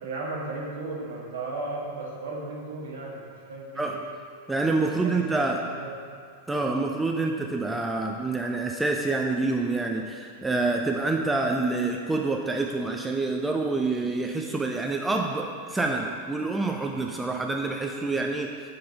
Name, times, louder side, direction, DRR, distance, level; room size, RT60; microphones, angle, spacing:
voice 1, 0.0-4.0 4.8-5.3 5.8-5.9, right 2 dB, 60° right, -3 dB, 1.3 m, -35 dB
voice 2, 4.5-5.6 6.5-18.5, right 3 dB, 10° right, 2 dB, 0.4 m, -27 dB
5.4 x 3.8 x 5.6 m, 2.2 s
figure-of-eight pair, 90°, 0 cm